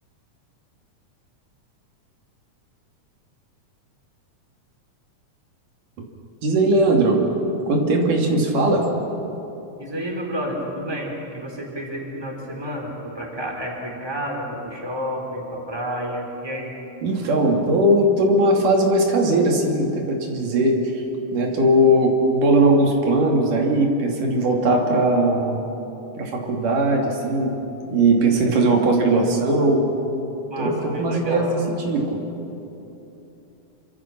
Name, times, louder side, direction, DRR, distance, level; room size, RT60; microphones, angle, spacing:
voice 1, 6.4-7.2 7.7-8.8 17.0-21.0 21.3-25.6 26.2-27.5 27.9-29.9 30.6-31.6 31.8-32.2, right 1 dB, 85° right, 1 dB, 4.1 m, -19 dB
voice 2, 9.8-16.7 30.5-31.5, equal, 10° right, 0 dB, 3.5 m, -30 dB
27.5 x 25.0 x 6.0 m, 3.0 s
omnidirectional pair, 3.6 m